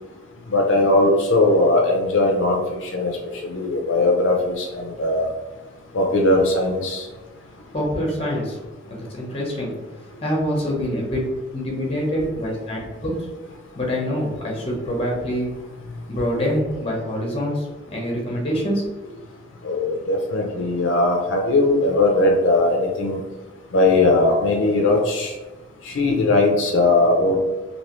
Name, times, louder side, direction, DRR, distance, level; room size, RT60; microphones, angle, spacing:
voice 1, 0.5-2.6 2.9-3.1 3.4-5.3 5.9-7.0 19.6-23.2 23.7-25.3 25.9-27.4, left 2 dB, 70° left, 1 dB, 0.5 m, -19 dB
voice 2, 7.7-8.6 8.9-9.7 10.0-11.2 11.5-13.3 13.7-15.5 16.1-19.1, equal, 30° left, -1 dB, 0.8 m, -25 dB
3.0 x 2.8 x 2.9 m, 1.2 s
head